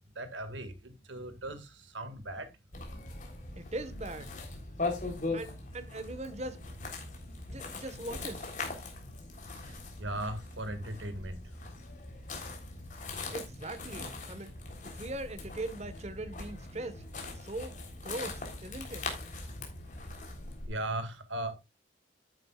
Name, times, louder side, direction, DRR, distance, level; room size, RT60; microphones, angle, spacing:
voice 1, 0.2-2.5 9.5-11.7 20.6-21.5, right 1 dB, 90° right, 2.0 m, -38 dB
sound 1, 2.7-20.7, left 3 dB, 45° left, 3.5 m, -41 dB
voice 2, 3.5-4.3 5.3-6.6 7.5-8.6 13.3-14.5 14.8-17.1 17.3-17.8 18.0-19.1, right 2 dB, 35° right, 1.3 m, -40 dB
11.0 x 10.0 x 2.4 m
head